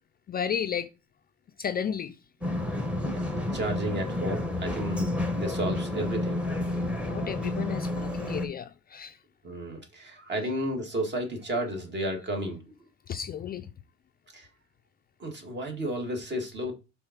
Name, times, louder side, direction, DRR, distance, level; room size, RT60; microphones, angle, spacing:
voice 1, 0.3-0.9 1.6-2.2 7.0-9.2 10.4-10.5 13.1-13.7, left 8 dB, 30° left, 0.4 m, -33 dB
sound 1, 2.4-8.5, left 1 dB, 5° right, 1.0 m, -30 dB
voice 2, 3.0-5.1 5.3-6.4 9.4-12.8 14.3-14.5 15.2-16.7, right 1 dB, 35° right, 1.9 m, -32 dB
5.5 x 4.0 x 5.8 m
cardioid pair, 145°, 30 cm